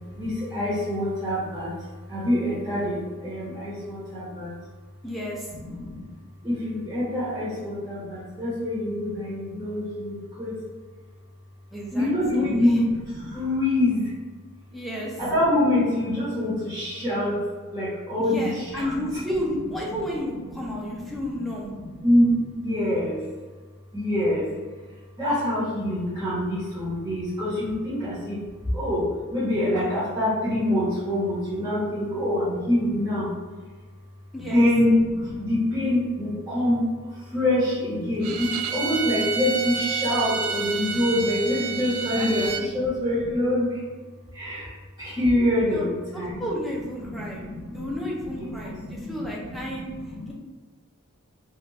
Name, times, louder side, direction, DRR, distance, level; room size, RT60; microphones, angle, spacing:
voice 1, 0.1-4.5 5.6-6.1 6.4-10.6 11.9-14.1 15.2-17.4 17.7-18.9 19.9-20.0 20.4-20.5 20.7-21.4 21.8-23.2 23.9-24.5 25.2-28.4 28.7-33.3 34.5-43.8 44.3-46.5 47.0-50.3, left 1 dB, 20° right, -12 dB, 1.4 m, -25 dB
voice 2, 5.0-5.5 11.7-12.1 12.4-12.8 14.7-15.2 18.2-21.7 34.3-34.7 42.2-42.3 42.6-42.8 45.7-45.8 46.1-49.9 50.3-50.4, equal, ahead, -4 dB, 0.7 m, -32 dB
Bowed string instrument, 38.2-42.7, right 5 dB, 70° right, 0.3 m, -29 dB
3.6 x 2.6 x 3.3 m, 1.4 s
head